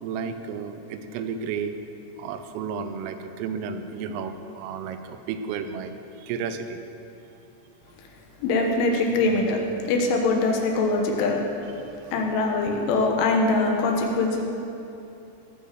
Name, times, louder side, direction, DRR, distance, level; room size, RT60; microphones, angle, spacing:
voice 1, 0.0-1.7 2.2-5.9 6.2-6.8 12.0-12.2, right 6 dB, 85° right, 8 dB, 3.3 m, -32 dB
voice 2, 8.4-11.5 12.1-14.4, left 3 dB, 75° left, 1 dB, 3.5 m, -23 dB
18.5 x 7.0 x 6.7 m, 2.9 s
omnidirectional pair, 5.8 m